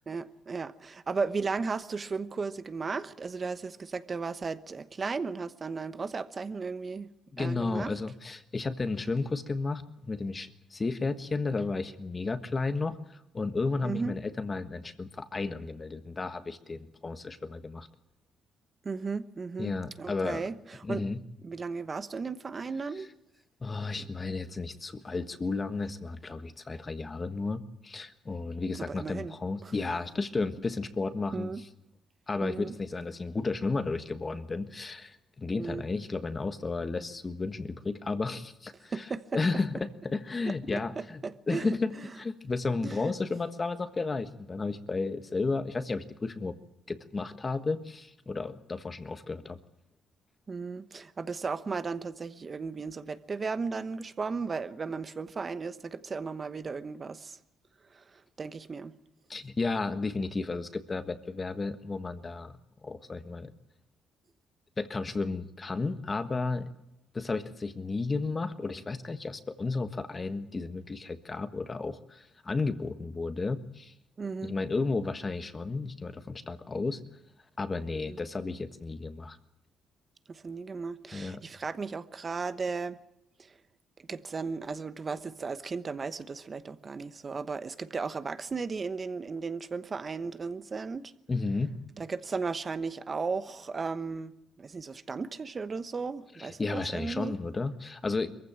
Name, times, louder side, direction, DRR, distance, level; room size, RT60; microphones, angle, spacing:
voice 1, 0.1-7.1 7.4-7.9 13.8-14.1 18.8-21.0 21.4-23.1 28.8-29.4 29.6-29.7 31.3-31.6 32.4-32.7 35.6-35.8 38.9-39.4 40.4-40.8 41.2-41.8 42.0-42.1 42.8-43.1 50.5-57.4 57.9-59.0 74.2-74.6 78.1-78.2 80.3-83.0 83.4-83.5 84.1-91.1 92.0-97.4, right 4 dB, 35° right, 1.0 m, -35 dB
voice 2, 7.3-17.9 19.6-20.4 20.8-21.2 23.0-23.1 23.6-31.5 32.3-39.0 39.3-46.5 46.9-49.6 59.3-62.5 62.8-63.5 64.8-66.7 67.1-73.9 74.4-77.0 77.6-79.4 81.1-81.4 91.3-91.7 96.4-98.3, left 3 dB, 30° left, 1.4 m, -33 dB
22.5 x 15.0 x 8.8 m
cardioid pair, 90°, 0 cm